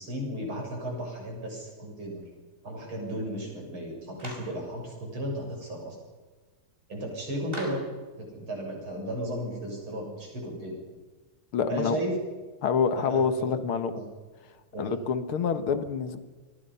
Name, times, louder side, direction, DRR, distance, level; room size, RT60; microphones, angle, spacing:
voice 1, 0.0-2.2 2.6-6.0 6.9-7.9 8.2-10.8 11.7-12.2 12.9-13.5 13.9-14.0 14.7-14.9, equal, 75° right, 0 dB, 8.3 m, -34 dB
Clapping, 4.2-4.6 7.5-8.0, right 1 dB, 25° right, 5.9 m, -40 dB
voice 2, 11.5-12.0 12.6-13.9 14.8-16.2, left 6 dB, 90° left, 10 dB, 2.3 m, -27 dB
28.5 x 23.0 x 5.7 m, 1.3 s
omnidirectional pair, 2.3 m